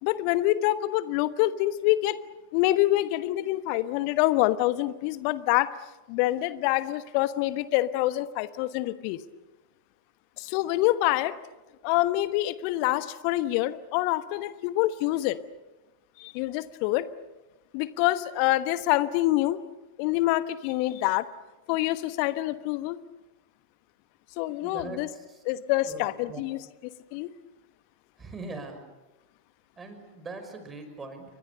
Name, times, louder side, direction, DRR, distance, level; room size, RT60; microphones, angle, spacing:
voice 1, 0.0-2.2 2.5-5.7 6.1-9.2 10.4-11.3 11.8-15.4 16.2-17.1 17.7-19.6 20.0-21.3 21.7-23.0 24.4-25.1 25.4-26.6 27.1-27.3, left 16 dB, 45° left, 14 dB, 1.2 m, -26 dB
voice 2, 24.6-25.4 25.8-26.4 28.2-28.8 29.8-31.3, right 3 dB, 15° right, 7 dB, 5.7 m, -41 dB
30.0 x 23.5 x 6.7 m, 1.1 s
figure-of-eight pair, 90°, 0 cm